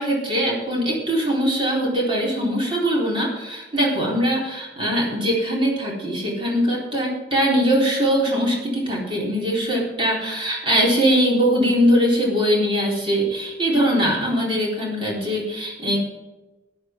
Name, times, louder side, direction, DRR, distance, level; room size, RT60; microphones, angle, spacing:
voice 1, 0.0-16.0, equal, 30° right, -3 dB, 3.8 m, -21 dB
14.0 x 10.0 x 4.5 m, 1.1 s
head